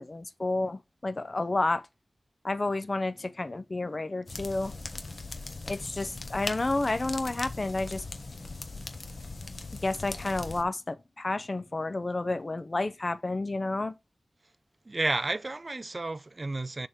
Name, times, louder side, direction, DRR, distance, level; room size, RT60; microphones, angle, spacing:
voice 1, 0.0-1.8 2.4-4.7 5.6-8.0 9.8-13.9, left 2 dB, 40° left, 0.6 m, -30 dB
sound 1, 4.3-10.6, left 3 dB, 55° left, 1.2 m, -39 dB
voice 2, 14.9-16.9, right 2 dB, 40° right, 0.4 m, -31 dB
6.6 x 3.7 x 5.0 m
wide cardioid pair, 90°, 0 cm